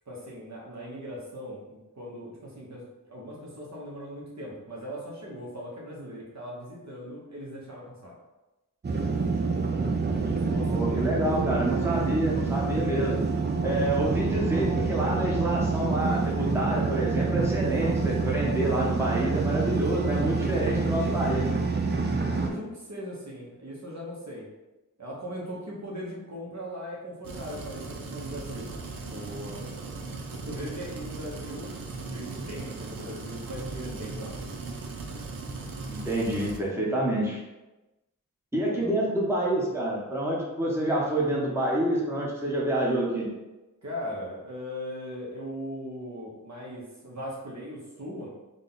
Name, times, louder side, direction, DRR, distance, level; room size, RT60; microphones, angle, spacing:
voice 1, 0.1-8.1 10.2-11.6 22.2-24.5 25.0-28.7 29.1-29.7 30.4-34.4 38.7-38.9 43.8-48.3, equal, 55° right, -4 dB, 1.0 m, -39 dB
sound 1, 8.8-22.5, right 4 dB, 30° right, 0.5 m, -27 dB
voice 2, 10.7-13.2 13.6-21.6 35.9-37.4 38.5-43.3, right 1 dB, 10° right, -5 dB, 0.9 m, -28 dB
sound 2, 27.2-36.6, right 3 dB, 85° right, 0.6 m, -38 dB
3.7 x 2.3 x 3.9 m, 1.0 s
wide cardioid pair, 70°, 33 cm